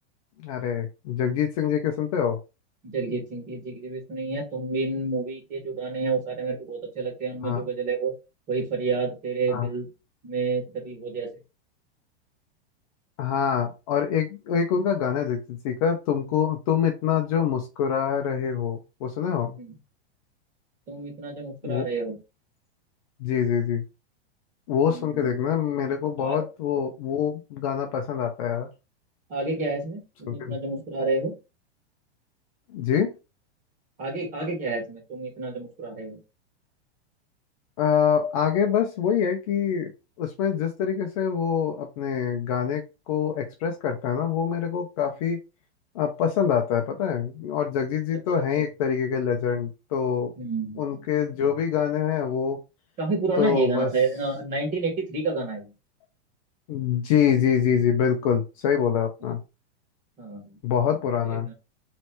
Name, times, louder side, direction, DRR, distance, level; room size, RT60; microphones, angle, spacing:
voice 1, 0.4-2.4 7.4-7.7 9.5-9.7 13.2-19.6 21.6-21.9 23.2-23.8 24.7-28.7 30.3-30.6 32.7-33.1 37.8-39.9 40.2-45.4 45.9-50.3 50.8-52.6 53.4-53.9 56.7-59.4 60.6-61.5, left 8 dB, 35° left, 4 dB, 0.5 m, -25 dB
voice 2, 2.8-8.1 8.5-9.9 10.2-11.3 19.6-19.7 20.9-22.2 24.8-25.4 26.2-26.5 29.3-31.3 34.0-36.2 48.4-48.5 50.4-50.8 53.0-55.7 60.2-60.6 61.3-61.5, right 3 dB, 25° right, 0 dB, 1.7 m, -29 dB
3.2 x 3.1 x 4.4 m, 0.29 s
supercardioid pair, 165°, 33 cm